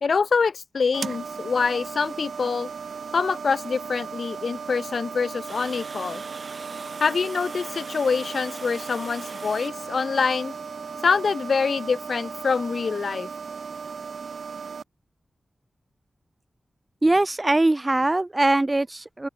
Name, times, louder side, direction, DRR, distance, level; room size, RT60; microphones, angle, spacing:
voice 1, 0.0-2.7 3.1-6.2 7.0-10.5 11.0-13.3, left 5 dB, 65° left, 0.7 m, -25 dB
sound 1, 0.9-14.8, right 5 dB, 75° right, 1.1 m, -36 dB
Water, 5.5-10.6, right 3 dB, 45° right, 3.1 m, -43 dB
voice 2, 17.0-19.3, right 2 dB, 20° right, 0.5 m, -21 dB
open air
wide cardioid pair, 100°, 0 cm